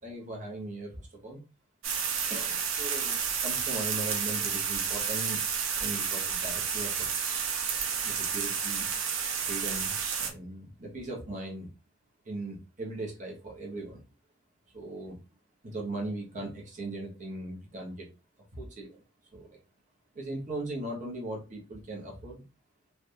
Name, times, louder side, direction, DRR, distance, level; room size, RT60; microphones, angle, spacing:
voice 1, 0.0-1.4 2.3-3.2 3.4-5.4 5.8-7.5 8.0-8.9 9.4-11.7 12.2-14.0 14.7-15.2 15.6-18.1 18.5-19.0 19.3-19.6 20.1-22.4, right 2 dB, 40° right, -1 dB, 1.0 m, -39 dB
sound 1, 1.8-10.3, right 6 dB, 80° right, 0.7 m, -31 dB
3.4 x 2.5 x 2.6 m, 0.29 s
head